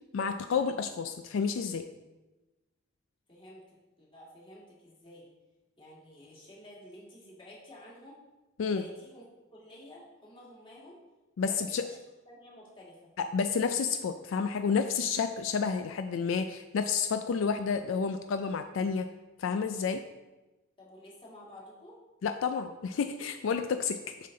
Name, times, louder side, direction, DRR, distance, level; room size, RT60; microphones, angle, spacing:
voice 1, 0.1-1.8 8.6-8.8 11.4-11.8 13.2-19.1 19.4-20.0 22.2-24.3, left 5 dB, 80° left, 8 dB, 0.4 m, -30 dB
voice 2, 3.3-5.3 5.8-8.2 8.7-9.3 9.5-11.0 11.4-12.0 12.3-13.1 20.8-22.0, left 1 dB, 25° left, -5 dB, 1.9 m, -51 dB
7.3 x 5.7 x 3.8 m, 1.1 s
head